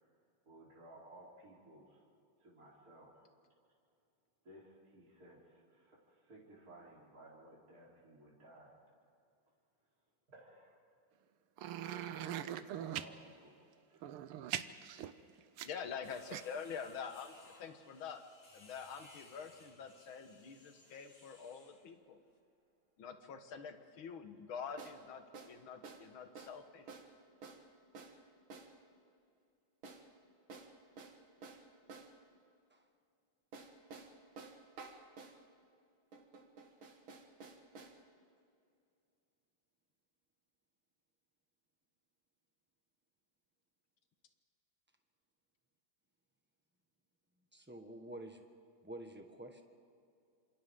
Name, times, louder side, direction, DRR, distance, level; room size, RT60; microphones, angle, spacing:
voice 1, 0.5-2.0 2.4-3.3 4.4-8.7 10.3-10.8 11.8-13.5 13.9-14.2, right 1 dB, 40° right, -6 dB, 4.4 m, -58 dB
sound 1, 11.6-13.1 14.0-16.0 16.3-16.4, right 11 dB, 90° right, 1.7 m, -41 dB
voice 2, 15.6-18.2 18.5-22.2 23.0-26.9, left 6 dB, 70° left, 7 dB, 2.1 m, -46 dB
sound 2, 16.0-21.9, left 2 dB, 30° left, 1.9 m, -62 dB
sound 3, 20.9-21.0 24.8-25.0 25.3-25.6 25.8-26.1 26.4-26.6 26.9-27.1 27.4-27.6 28.0-28.2 28.5-28.7 29.8-30.1 30.5-32.1 33.5-35.4 36.1-38.0, right 4 dB, 70° right, 2.5 m, -52 dB
voice 3, 47.5-48.4 48.8-49.6, right 1 dB, 5° right, 4 dB, 1.1 m, -49 dB
28.5 x 26.5 x 3.8 m, 2.5 s
omnidirectional pair, 2.3 m